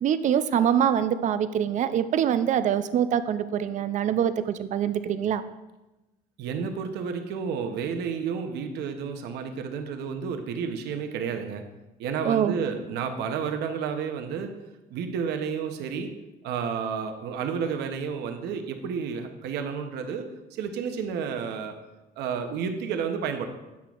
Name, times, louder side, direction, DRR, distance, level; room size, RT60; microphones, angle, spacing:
voice 1, 0.0-5.4 12.2-12.6, right 9 dB, 50° right, 13 dB, 0.4 m, -24 dB
voice 2, 6.4-11.6 12.0-14.5 14.9-16.1 16.4-20.3 20.6-21.7 22.2-23.5, right 6 dB, 80° right, 6 dB, 0.7 m, -31 dB
8.4 x 5.9 x 2.4 m, 1.0 s
cardioid pair, 110°, 17 cm